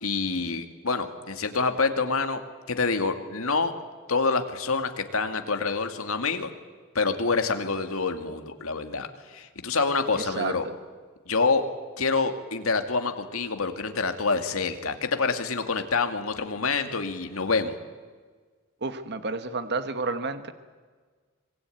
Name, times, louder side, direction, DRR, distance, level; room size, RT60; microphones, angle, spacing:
voice 1, 0.0-2.4 2.7-3.7 4.1-6.5 6.9-10.6 11.3-11.6 12.0-17.8, left 4 dB, 70° left, 7 dB, 2.3 m, -27 dB
voice 2, 18.8-20.5, right 3 dB, 50° right, 10 dB, 1.3 m, -30 dB
25.5 x 22.5 x 9.3 m, 1.5 s
head